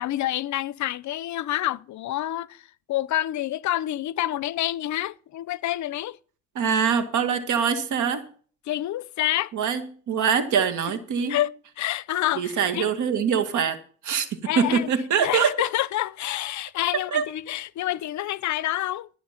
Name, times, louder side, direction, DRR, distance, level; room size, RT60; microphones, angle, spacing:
voice 1, 0.0-2.6 2.9-6.2 8.7-9.5 11.3-12.9 14.1-14.9 15.2-19.1, left 14 dB, 70° left, 0.6 m, -28 dB
voice 2, 6.6-8.3 9.5-11.5 12.4-13.8 14.0-15.5 16.9-17.3, right 7 dB, 75° right, 1.9 m, -24 dB
15.5 x 6.9 x 5.8 m
cardioid pair, 90°, 30 cm